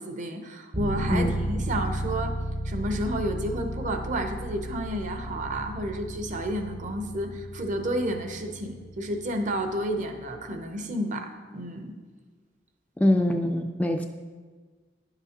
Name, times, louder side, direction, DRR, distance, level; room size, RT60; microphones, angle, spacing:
voice 1, 0.0-2.3 2.6-12.0, right 1 dB, 45° right, 5 dB, 0.7 m, -31 dB
sound 1, 0.7-10.5, equal, 60° right, 2.1 m, -34 dB
voice 2, 13.0-14.0, left 1 dB, 10° left, 4 dB, 0.3 m, -23 dB
10.5 x 6.8 x 2.9 m, 1.5 s
head